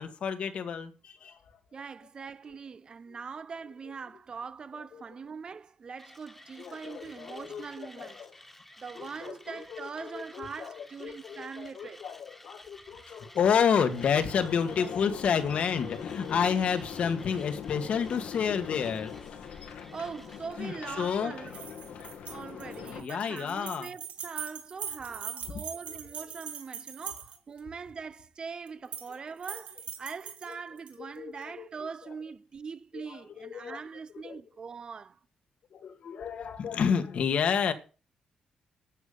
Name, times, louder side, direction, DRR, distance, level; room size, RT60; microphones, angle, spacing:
voice 1, 0.0-1.4 4.9-5.0 6.6-8.3 9.0-19.3 20.6-21.3 23.0-23.9 30.5-30.6 31.0-31.9 32.9-33.8 34.2-34.4 35.7-37.7, left 7 dB, 60° left, 1.8 m, -30 dB
voice 2, 1.7-8.2 8.8-12.0 19.9-21.7 22.3-35.2, right 5 dB, 40° right, 0.8 m, -42 dB
Mechanisms, 6.0-20.5, left 1 dB, 10° left, 1.7 m, -54 dB
sound 1, 13.7-23.0, left 7 dB, 85° left, 2.3 m, -42 dB
sound 2, 21.5-27.6 28.7-29.2 29.4-31.0, right 8 dB, 70° right, 2.7 m, -41 dB
11.0 x 7.3 x 6.9 m
cardioid pair, 110°, 2 cm